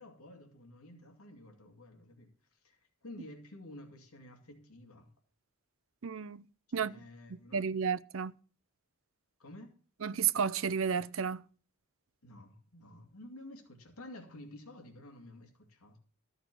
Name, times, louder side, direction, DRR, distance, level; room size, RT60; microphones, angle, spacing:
voice 1, 0.0-5.1 6.7-7.7 9.4-9.7 12.2-16.0, left 1 dB, 80° left, 2.5 m, -51 dB
voice 2, 6.0-6.4 6.7-6.9 7.5-8.3 10.0-11.4, right 7 dB, 65° right, 0.6 m, -32 dB
14.0 x 6.6 x 6.1 m
head